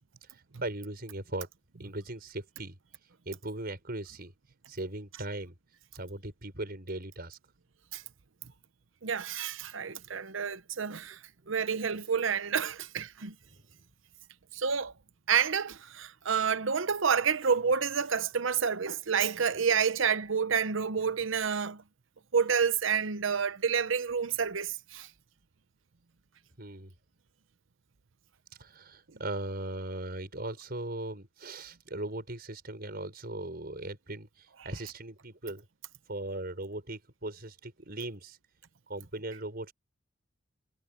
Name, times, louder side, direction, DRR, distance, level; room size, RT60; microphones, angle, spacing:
voice 1, 0.6-1.5 1.8-2.8 3.3-4.3 4.7-5.5 5.9-7.4 13.6-13.8 26.6-26.9 28.6-35.6 36.1-38.4 38.9-39.7, right 1 dB, 50° right, 6.1 m, -38 dB
voice 2, 9.0-11.2 11.5-13.3 14.5-14.9 15.3-21.8 22.3-25.1, right 6 dB, 65° right, 0.8 m, -29 dB
head